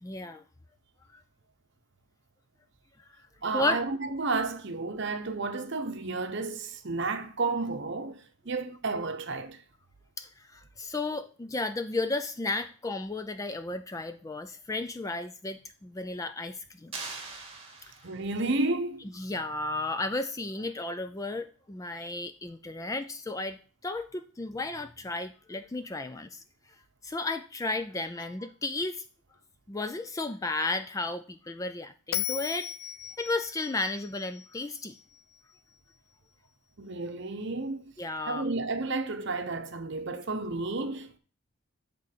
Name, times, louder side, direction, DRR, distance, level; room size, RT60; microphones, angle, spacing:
voice 1, 0.0-0.4 1.1-1.2 3.0-3.1 3.5-3.8 10.2-16.9 19.1-26.4 27.0-29.0 29.7-32.7 33.2-34.9 38.0-38.5, left 2 dB, 15° left, 0.3 m, -33 dB
voice 2, 3.4-9.6 18.0-19.1 36.8-37.9 38.3-41.2, right 3 dB, 55° right, 0.8 m, -32 dB
sound 1, 16.9-18.4, right 4 dB, 25° right, 1.8 m, -41 dB
Bell, 32.1-35.4, left 12 dB, 75° left, 0.5 m, -37 dB
8.1 x 3.8 x 6.5 m
head